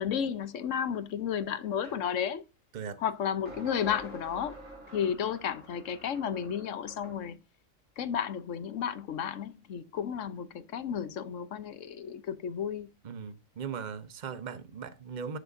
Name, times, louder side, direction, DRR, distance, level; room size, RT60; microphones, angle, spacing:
voice 1, 0.0-2.4 3.0-4.6 4.9-7.4 8.0-12.9, left 8 dB, 70° left, 1.2 m, -32 dB
sound 1, 1.8-2.0 3.5-7.2, right 1 dB, 75° right, 3.3 m, -48 dB
voice 2, 13.0-15.4, right 6 dB, 40° right, 0.9 m, -39 dB
11.5 x 6.5 x 2.6 m
omnidirectional pair, 1.4 m